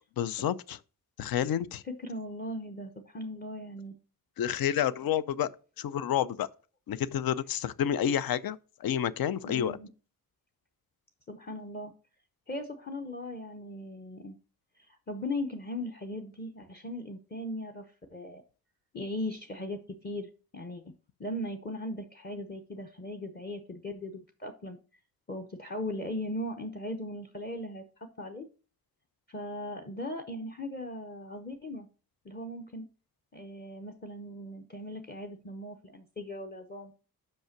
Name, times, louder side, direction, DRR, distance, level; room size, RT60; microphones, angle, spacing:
voice 1, 0.2-0.8 1.2-1.8 4.4-5.5 5.8-6.5 6.9-9.8, left 10 dB, 70° left, 0.5 m, -29 dB
voice 2, 2.0-3.9 9.4-9.9 11.3-11.9 12.5-14.4 14.8-18.4 18.9-20.8 21.2-24.8 25.3-28.5 29.3-31.9 32.2-32.9 33.3-36.9, left 1 dB, 25° left, 0.8 m, -38 dB
5.9 x 5.4 x 5.8 m
wide cardioid pair, 110°, 37 cm